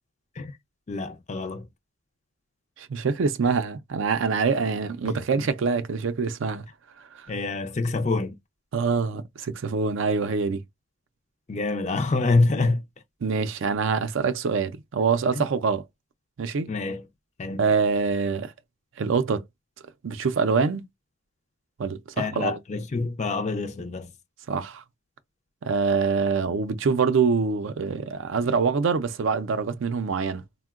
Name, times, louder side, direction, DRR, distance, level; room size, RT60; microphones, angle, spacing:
voice 1, 0.9-1.6 5.0-5.4 7.3-8.3 11.5-12.8 15.4-15.5 16.7-17.0 17.4-17.6 22.2-24.1, left 3 dB, 35° left, 0.4 m, -26 dB
voice 2, 2.8-6.6 7.1-7.3 8.7-10.6 13.2-15.8 16.4-16.7 17.6-18.5 19.0-19.4 20.0-20.8 21.8-22.6 24.5-24.8 25.6-30.4, right 5 dB, 65° right, 0.4 m, -25 dB
3.6 x 2.1 x 2.3 m
head